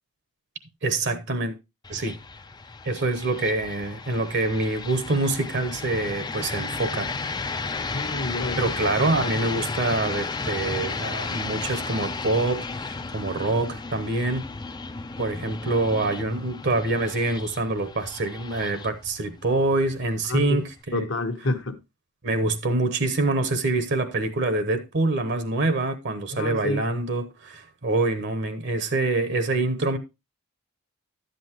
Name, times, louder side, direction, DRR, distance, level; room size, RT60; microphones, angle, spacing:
voice 1, 0.8-1.5 1.9-2.2 2.8-7.1 8.6-14.5 15.2-21.1 22.2-30.0, right 2 dB, 55° right, 0.9 m, -25 dB
sound 1, 1.8-20.8, left 4 dB, 20° left, 0.4 m, -34 dB
voice 2, 7.9-8.7 20.3-20.6 20.9-21.8 26.3-26.9, left 2 dB, 60° left, 1.1 m, -28 dB
11.5 x 7.8 x 2.9 m
head